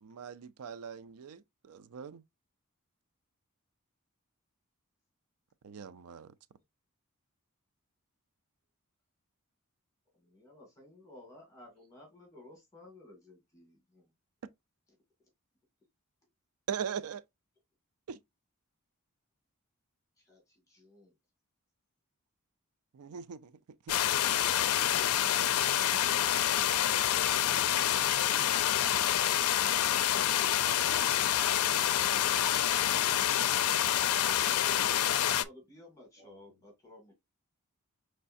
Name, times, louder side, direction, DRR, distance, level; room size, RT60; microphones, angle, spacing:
voice 1, 0.0-2.2 5.6-6.3 16.7-17.2 18.1-18.2 22.9-23.5 23.9-24.0, right 7 dB, 85° right, 0.4 m, -40 dB
voice 2, 10.1-14.1 20.2-21.1 34.4-37.1, left 1 dB, 15° left, 2.1 m, -55 dB
sound 1, 23.9-35.4, left 11 dB, 80° left, 0.4 m, -27 dB
voice 3, 30.3-33.2 36.2-36.6, right 1 dB, 45° right, 1.3 m, -54 dB
5.5 x 3.2 x 2.6 m
head